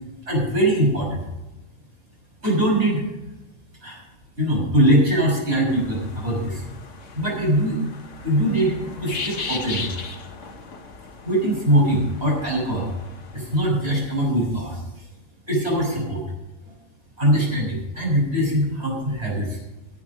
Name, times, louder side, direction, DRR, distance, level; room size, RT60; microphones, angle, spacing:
voice 1, 0.3-1.3 2.4-3.0 3.8-4.0 4.4-6.6 7.1-7.8 8.2-9.9 11.2-12.9 13.3-14.8 15.5-16.2 17.2-19.6, right 1 dB, 50° right, -2 dB, 6.5 m, -22 dB
sound 1, 5.7-13.6, left 4 dB, 65° left, 1.7 m, -37 dB
19.0 x 7.7 x 5.2 m, 1.0 s
omnidirectional pair, 1.4 m